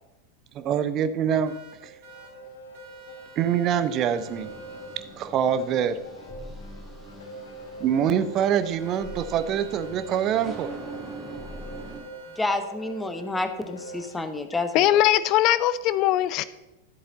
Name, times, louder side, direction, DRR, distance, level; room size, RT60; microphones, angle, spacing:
voice 1, 0.5-1.5 1.8-1.9 3.4-4.5 5.2-6.0 7.8-10.7, right 8 dB, 35° right, 12 dB, 0.7 m, -25 dB
sound 1, 1.4-2.3 2.7-5.0 8.8-12.5, right 7 dB, 50° right, 2.4 m, -50 dB
sound 2, 1.7-14.3, equal, 65° left, 1.4 m, -43 dB
sound 3, 4.2-12.0, right 1 dB, 15° right, 2.7 m, -43 dB
voice 2, 12.4-14.9, left 2 dB, 10° left, 8 dB, 1.0 m, -29 dB
voice 3, 14.7-16.4, left 13 dB, 40° left, 17 dB, 0.5 m, -20 dB
13.0 x 7.6 x 4.0 m, 0.97 s
figure-of-eight pair, 90°, 0 cm